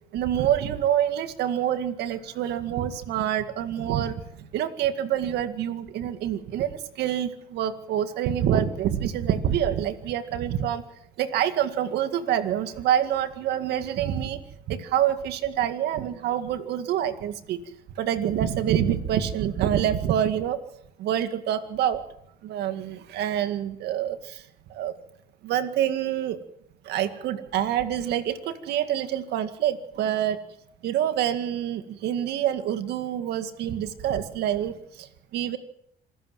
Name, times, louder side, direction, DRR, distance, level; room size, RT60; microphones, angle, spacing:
voice 1, 0.1-4.1 4.5-10.8 11.2-14.4 14.7-17.6 18.0-20.6 21.0-22.0 22.4-24.2 24.7-24.9 25.4-26.4 26.9-30.4 30.8-34.7 35.3-35.6, right 10 dB, 75° right, 9 dB, 2.0 m, -26 dB
26.5 x 14.0 x 7.5 m, 0.76 s
cardioid pair, 110°, 17 cm